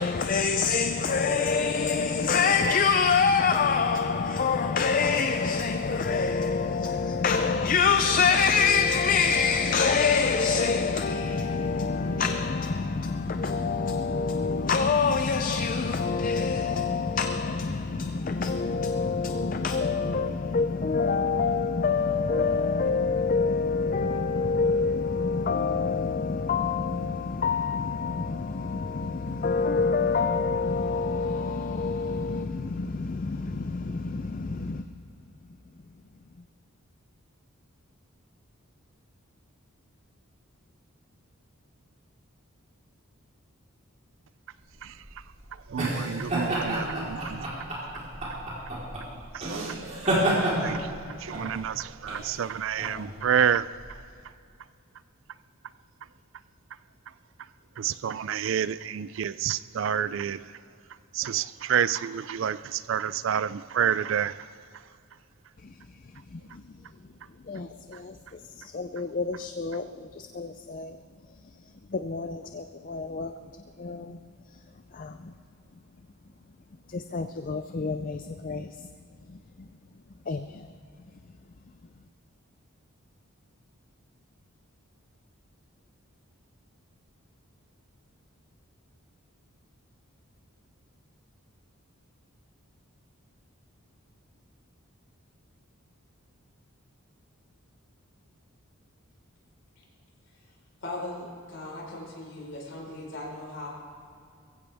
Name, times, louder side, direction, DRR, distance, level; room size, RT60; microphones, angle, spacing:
voice 1, 0.0-34.8 67.5-68.1 68.6-69.8 70.2-71.0 71.9-73.3 73.8-74.2 74.9-75.3 76.9-78.7 80.3-80.5, left 5 dB, 40° left, 0.4 m, -26 dB
sound 1, 44.7-53.9, right 1 dB, 30° right, 3.8 m, -30 dB
voice 2, 45.7-47.5 49.3-53.7 57.8-60.4 61.1-64.4, right 8 dB, 60° right, 0.3 m, -29 dB
voice 3, 100.8-103.7, left 2 dB, 55° left, 4.4 m, -38 dB
21.5 x 15.5 x 3.5 m
head